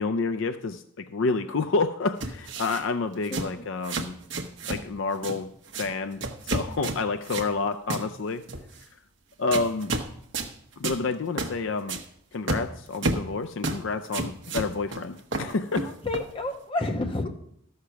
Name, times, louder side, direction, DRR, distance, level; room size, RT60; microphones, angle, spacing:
voice 1, 0.0-4.1 4.7-5.5 5.8-6.2 6.5-8.4 9.4-9.9 10.8-12.0 12.3-15.9, left 4 dB, 60° left, 8 dB, 0.5 m, -29 dB
sound 1, 2.2-2.8 3.2-3.5 3.8-4.9 5.1-5.4 5.7-5.9 6.2-7.5 7.9-8.1 8.5-8.8 9.5-10.1 10.3-10.5 10.8-11.0 11.4-11.5 11.9-12.0 12.5-13.3 13.6-13.8 14.1-15.0 15.3-16.3, right 2 dB, 55° right, 1.0 m, -31 dB
voice 2, 3.3-3.7 15.8-17.3, left 2 dB, 25° left, 4 dB, 1.0 m, -30 dB
13.5 x 6.6 x 5.8 m, 0.70 s
head